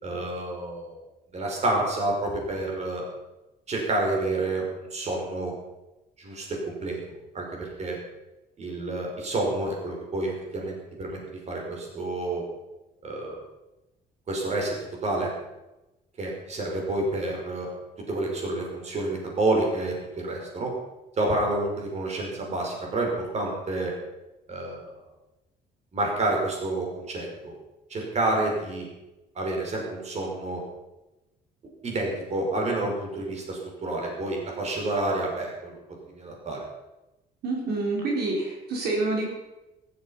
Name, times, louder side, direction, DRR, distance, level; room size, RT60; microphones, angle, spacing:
voice 1, 0.0-1.0 1.3-3.0 3.7-5.5 6.2-8.0 8.6-12.4 13.0-13.4 14.3-14.7 15.0-15.3 16.2-17.7 18.1-20.7 21.2-23.9 24.5-24.9 25.9-27.6 27.9-28.9 29.4-30.6 31.8-35.8 36.2-36.6, right 2 dB, 40° right, 0 dB, 5.5 m, -29 dB
voice 2, 37.4-39.3, right 2 dB, 70° right, -2 dB, 4.8 m, -27 dB
15.0 x 13.5 x 5.8 m, 1.0 s
cardioid pair, 110°, 17 cm